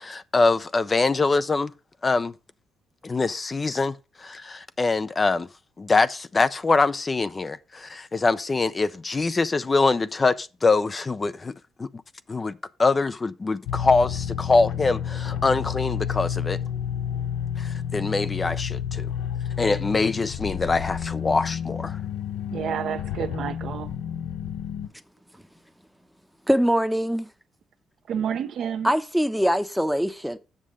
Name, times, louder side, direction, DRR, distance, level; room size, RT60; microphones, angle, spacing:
voice 1, 0.0-1.7 2.0-2.3 3.0-3.9 4.2-5.5 5.8-11.5 11.8-11.9 12.3-16.6 17.6-19.1 19.6-22.0, left 3 dB, 30° left, 0.5 m, -24 dB
sound 1, 13.7-24.9, left 9 dB, 90° left, 0.7 m, -30 dB
voice 2, 22.5-23.9 28.1-28.9, right 8 dB, 65° right, 0.8 m, -29 dB
voice 3, 26.5-27.3 28.8-30.4, equal, ahead, 0.8 m, -23 dB
7.5 x 6.4 x 4.9 m
cardioid pair, 90°, 0 cm